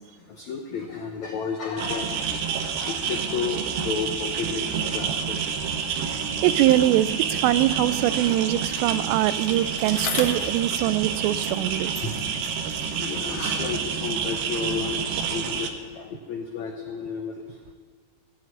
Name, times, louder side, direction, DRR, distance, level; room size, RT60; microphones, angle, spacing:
voice 1, 0.3-4.7 4.9-5.4 8.0-8.5 10.2-10.4 12.0-12.1 13.0-17.5, left 5 dB, 90° left, 3 dB, 1.6 m, -32 dB
sound 1, 1.8-15.7, right 6 dB, 70° right, 2.7 m, -28 dB
voice 2, 6.4-11.9, right 14 dB, 85° right, 15 dB, 2.8 m, -23 dB
Bicycle, 9.3-11.7 11.9-14.3 15.1-15.2, left 5 dB, 75° left, 1.2 m, -38 dB
17.0 x 7.9 x 9.7 m, 1.5 s
omnidirectional pair, 5.0 m